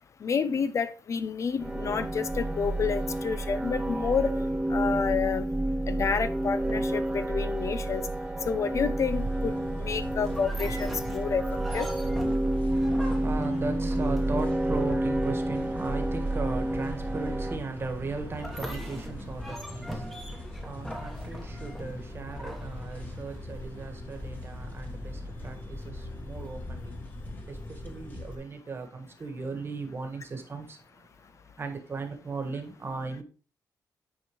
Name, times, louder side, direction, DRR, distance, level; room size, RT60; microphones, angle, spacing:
voice 1, 0.2-4.3 4.7-5.4 5.9-8.1 8.5-9.5 9.8-11.4 11.7-11.9, left 6 dB, 45° left, 0.5 m, -29 dB
sound 1, 1.6-17.6, right 1 dB, 15° right, 0.4 m, -29 dB
sound 2, 9.1-28.4, left 1 dB, 25° left, 1.4 m, -41 dB
sound 3, 10.3-14.6 18.3-23.4, equal, 5° left, 1.1 m, -42 dB
voice 2, 12.7-27.0 27.5-30.8 31.6-33.2, right 4 dB, 35° right, 1.4 m, -37 dB
9.2 x 4.4 x 3.1 m
cardioid pair, 110°, 7 cm